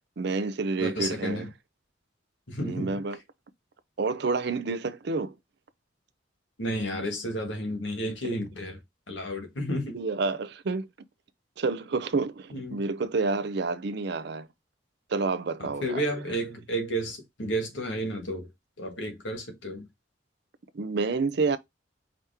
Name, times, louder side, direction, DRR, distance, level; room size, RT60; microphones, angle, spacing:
voice 1, 0.2-1.4 2.6-3.2 4.0-5.4 9.9-10.9 11.6-14.5 15.1-16.0 20.7-21.6, right 4 dB, 60° right, 0.5 m, -29 dB
voice 2, 0.8-1.5 2.5-3.0 6.6-8.8 9.1-10.0 12.5-12.9 15.6-18.5 18.8-19.9, equal, 75° left, 1.8 m, -32 dB
5.0 x 2.8 x 3.4 m
head